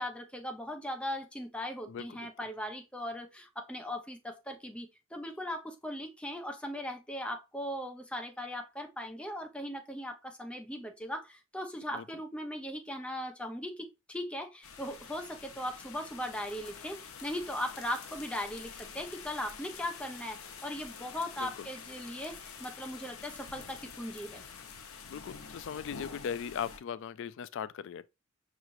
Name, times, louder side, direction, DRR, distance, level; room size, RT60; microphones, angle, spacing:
voice 1, 0.0-24.4, left 1 dB, 5° left, 0.6 m, -39 dB
voice 2, 1.9-2.3 11.9-12.0 21.4-21.7 25.1-28.1, left 8 dB, 60° left, 0.3 m, -39 dB
sound 1, 14.6-26.8, left 6 dB, 90° left, 0.7 m, -47 dB
5.7 x 3.1 x 2.6 m
head